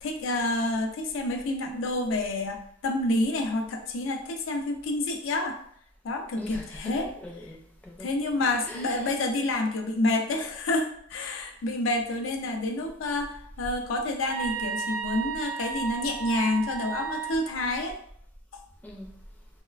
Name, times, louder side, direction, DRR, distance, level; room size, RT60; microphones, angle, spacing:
voice 1, 0.0-5.6 6.0-7.1 8.0-18.0, left 2 dB, 85° left, 4 dB, 0.4 m, -28 dB
voice 2, 6.4-6.9 7.2-8.1 8.6-9.2 18.8-19.1, left 1 dB, 10° left, -2 dB, 0.4 m, -41 dB
sound 1, 14.3-17.6, right 8 dB, 75° right, 0.6 m, -33 dB
3.0 x 2.0 x 2.3 m, 0.66 s
head